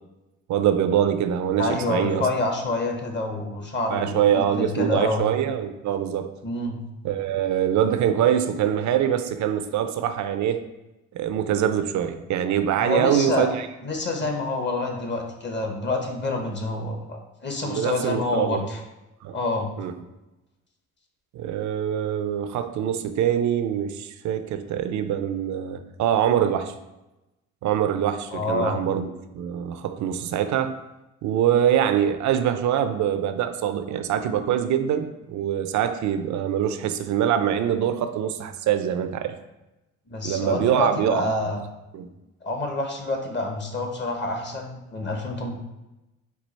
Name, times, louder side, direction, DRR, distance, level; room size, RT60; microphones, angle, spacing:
voice 1, 0.5-2.2 3.9-6.3 7.0-10.6 11.1-13.7 17.6-18.6 19.2-19.4 19.8-19.9 21.3-26.7 27.6-29.1 29.3-30.8 31.2-39.4 40.2-41.3 41.9-42.1, right 9 dB, 70° right, 9 dB, 0.5 m, -24 dB
voice 2, 1.6-5.2 6.4-6.8 12.8-13.5 13.8-18.8 19.3-19.7 28.3-28.8 40.1-41.7 42.4-45.6, left 2 dB, 35° left, 3 dB, 0.9 m, -27 dB
4.6 x 2.4 x 4.1 m, 0.98 s
cardioid pair, 90°, 30 cm